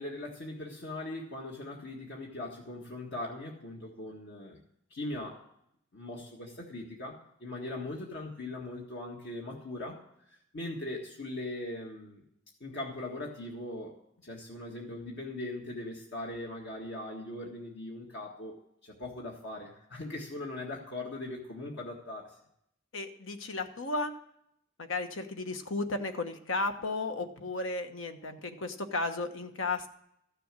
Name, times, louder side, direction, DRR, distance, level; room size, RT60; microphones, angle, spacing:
voice 1, 0.0-4.6 4.9-5.4 5.9-12.2 12.6-18.6 18.8-22.4, left 2 dB, 60° left, -1 dB, 1.7 m, -40 dB
voice 2, 22.9-24.1 24.8-29.9, left 2 dB, 75° left, 7 dB, 1.2 m, -34 dB
14.0 x 6.9 x 7.5 m, 0.74 s
head